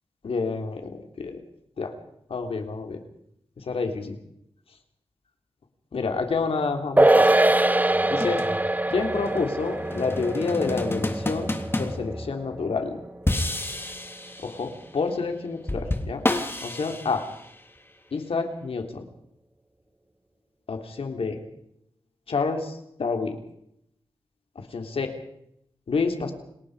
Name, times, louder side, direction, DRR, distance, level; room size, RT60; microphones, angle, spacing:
voice 1, 0.2-1.4 1.8-1.9 2.3-3.0 3.6-4.2 5.9-7.3 8.1-8.4 8.9-11.5 11.8-13.0 14.4-16.2 16.6-17.2 18.1-19.1 20.7-21.4 22.3-23.4 24.5-25.1 25.9-26.3, left 4 dB, 80° left, 5 dB, 3.4 m, -28 dB
sound 1, 7.0-13.6 13.9-14.0, right 1 dB, 15° right, 0.8 m, -23 dB
sound 2, 7.9-12.7 13.3-14.8 15.7-17.6, left 1 dB, 25° left, 3.0 m, -31 dB
29.0 x 19.5 x 5.0 m, 0.76 s
cardioid pair, 60°, 10 cm